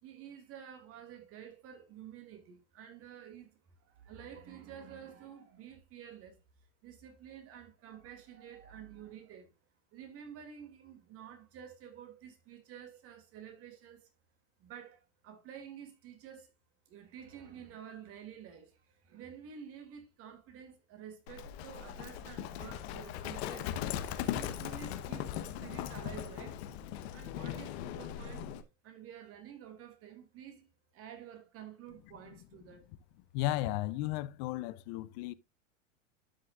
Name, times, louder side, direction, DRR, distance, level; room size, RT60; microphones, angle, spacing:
voice 1, 0.0-6.4 6.8-9.5 9.9-14.1 14.6-16.5 16.9-23.9 24.3-26.6 27.1-28.5 28.8-30.7 30.9-32.8, right 9 dB, 35° right, 2.5 m, -50 dB
Livestock farm animals working animals, 21.3-28.6, left 11 dB, 55° left, 1.1 m, -39 dB
voice 2, 33.3-35.3, left 15 dB, 35° left, 0.5 m, -34 dB
12.0 x 6.4 x 2.4 m
hypercardioid pair, 135°, 39 cm